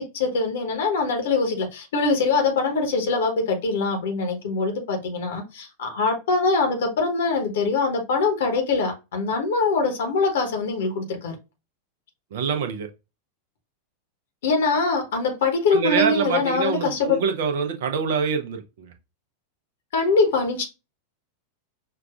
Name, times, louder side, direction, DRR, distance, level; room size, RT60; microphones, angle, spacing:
voice 1, 0.0-11.3 14.4-17.2 19.9-20.6, left 4 dB, 60° left, 0.9 m, -23 dB
voice 2, 12.3-12.9 15.7-18.9, right 6 dB, 55° right, 0.7 m, -25 dB
5.7 x 2.4 x 2.4 m
figure-of-eight pair, 90°, 0 cm